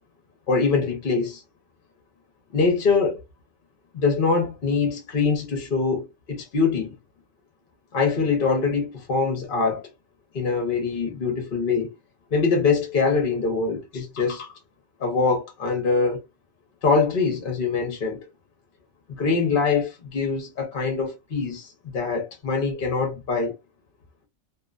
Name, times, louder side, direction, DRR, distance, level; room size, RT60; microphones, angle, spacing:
voice 1, 0.5-1.4 2.5-3.2 3.9-6.9 7.9-9.9 10.3-11.9 12.3-14.5 15.0-16.2 16.8-18.3 19.2-23.5, left 4 dB, 50° left, 0.8 m, -23 dB
2.6 x 2.1 x 2.3 m
omnidirectional pair, 1.4 m